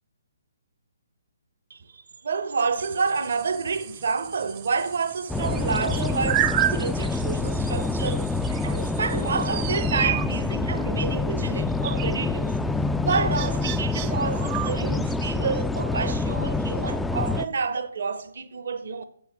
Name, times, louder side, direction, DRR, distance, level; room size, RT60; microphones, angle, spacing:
voice 1, 1.7-12.6 13.0-19.0, right 5 dB, 60° right, 0.8 m, -29 dB
sound 1, 2.8-15.0, right 13 dB, 30° right, 0.6 m, -33 dB
sound 2, 5.3-17.5, left 3 dB, 5° left, 0.3 m, -26 dB
7.8 x 5.5 x 5.9 m
figure-of-eight pair, 135°, 0 cm